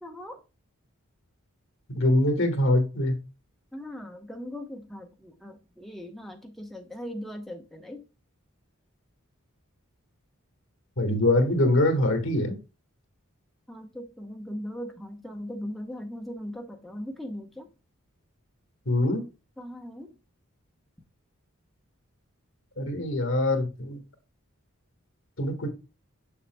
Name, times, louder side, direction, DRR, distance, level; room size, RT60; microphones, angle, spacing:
voice 1, 0.0-0.4 3.7-8.0 13.7-17.7 19.6-20.1, equal, ahead, 0.9 m, -39 dB
voice 2, 1.9-3.2 11.0-12.6 18.8-19.2 22.8-24.0 25.4-25.7, left 1 dB, 65° left, 1.6 m, -23 dB
6.9 x 6.6 x 2.2 m
head